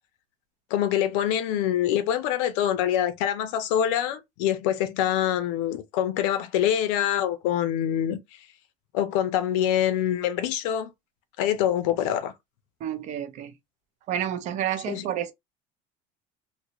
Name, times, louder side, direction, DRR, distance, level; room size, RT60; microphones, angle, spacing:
voice 1, 0.7-8.2 8.9-10.9 11.4-12.3 14.9-15.0, left 10 dB, 90° left, 0.7 m, -25 dB
voice 2, 12.8-13.5 14.1-15.3, right 10 dB, 45° right, 0.6 m, -30 dB
2.8 x 2.6 x 2.9 m
cardioid pair, 145°, 16 cm